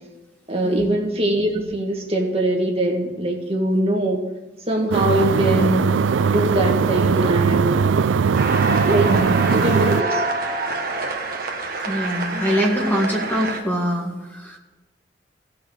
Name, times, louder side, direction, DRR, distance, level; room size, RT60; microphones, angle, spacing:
voice 1, 0.5-4.2 4.7-5.8 6.2-7.9 8.9-9.1 9.5-10.2, right 1 dB, 30° right, -1 dB, 2.0 m, -22 dB
sound 1, 4.9-10.0, right 5 dB, 90° right, 0.4 m, -19 dB
sound 2, 8.3-13.6, right 3 dB, 55° right, 1.3 m, -26 dB
voice 2, 9.1-9.6 11.8-14.6, equal, 10° left, -1 dB, 1.9 m, -24 dB
16.0 x 5.8 x 6.5 m, 1.1 s
head